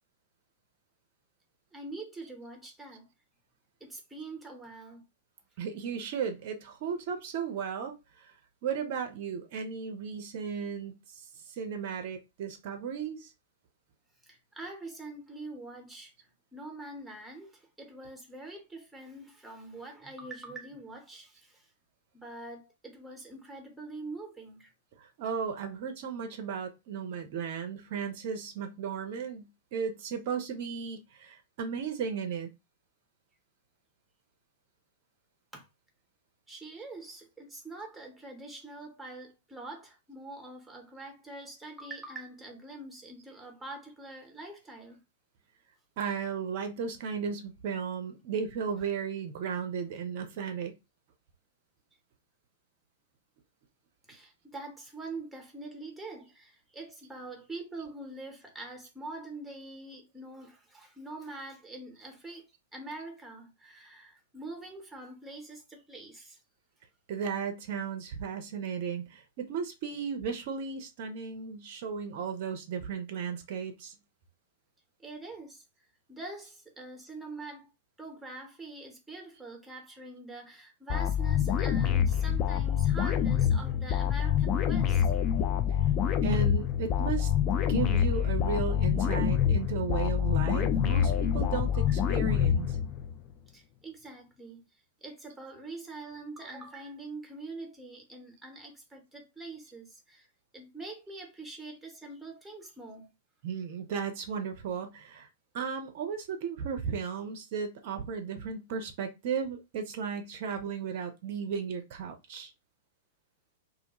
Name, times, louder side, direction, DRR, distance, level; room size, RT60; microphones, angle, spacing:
voice 1, 1.7-3.1 3.8-5.0 14.2-21.7 22.1-24.7 35.5-35.7 36.5-45.0 54.1-62.4 62.7-66.4 75.0-75.6 76.1-77.7 78.0-85.1 93.5-94.6 95.0-100.3 100.5-103.1, right 2 dB, 5° right, 0.8 m, -44 dB
voice 2, 5.6-8.3 8.6-13.3 25.0-32.5 46.0-50.7 67.1-74.0 85.7-85.8 86.2-87.3 87.7-92.8 103.4-105.3 105.5-112.5, right 6 dB, 45° right, 0.5 m, -35 dB
sound 1, 80.9-93.2, left 9 dB, 30° left, 0.3 m, -26 dB
2.4 x 2.1 x 2.9 m
figure-of-eight pair, 100°, 0 cm